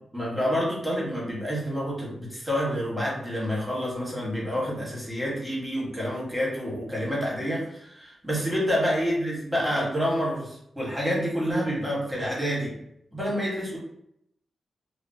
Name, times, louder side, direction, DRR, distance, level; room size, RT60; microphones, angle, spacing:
voice 1, 0.1-12.7 13.1-13.8, equal, 10° right, -5 dB, 1.2 m, -28 dB
2.8 x 2.1 x 2.6 m, 0.74 s
cardioid pair, 95°, 0 cm